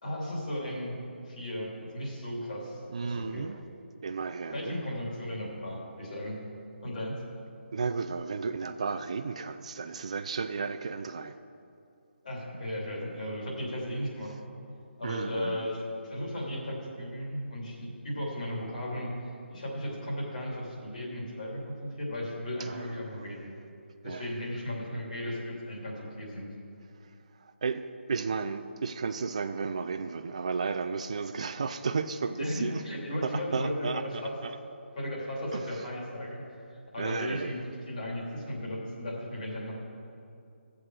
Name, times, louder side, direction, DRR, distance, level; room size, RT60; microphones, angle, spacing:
voice 1, 0.0-1.0 1.3-3.5 4.5-6.4 6.8-7.1 12.2-14.4 15.0-23.5 24.0-26.5 32.4-34.3 34.9-36.4 36.7-39.8, left 1 dB, 40° left, -3 dB, 2.9 m, -35 dB
voice 2, 2.9-3.6 4.0-4.8 7.7-11.3 15.0-15.7 22.6-23.3 24.0-24.4 27.0-27.1 27.4-32.8 33.2-34.6 35.5-35.9 37.0-37.6, right 5 dB, 30° right, 8 dB, 0.3 m, -34 dB
14.5 x 7.5 x 4.8 m, 2.5 s
hypercardioid pair, 175°, 7 cm